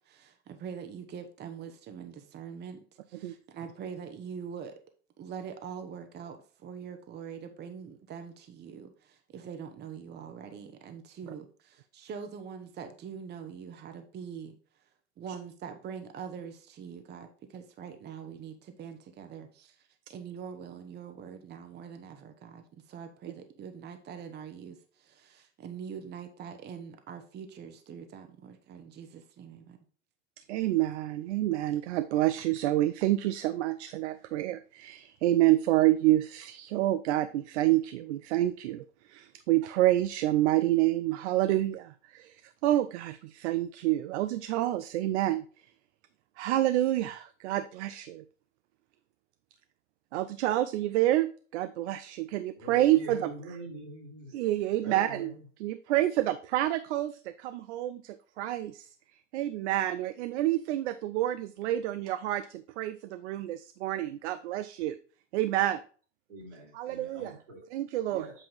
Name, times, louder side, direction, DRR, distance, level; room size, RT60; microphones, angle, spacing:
voice 1, 0.0-2.8 3.1-4.7 5.2-14.6 15.2-29.8, right 7 dB, 30° right, 7 dB, 0.9 m, -43 dB
voice 2, 30.5-45.5 46.4-48.2 50.1-53.6 54.3-58.9 59.3-65.0 65.3-65.8 66.7-67.4 67.7-68.3, right 14 dB, 70° right, 11 dB, 0.5 m, -28 dB
voice 3, 52.5-54.3 54.8-55.4 66.3-67.6 68.1-68.3, right 3 dB, 85° right, -3 dB, 3.1 m, -43 dB
8.1 x 2.8 x 5.4 m, 0.41 s
hypercardioid pair, 100°, 36 cm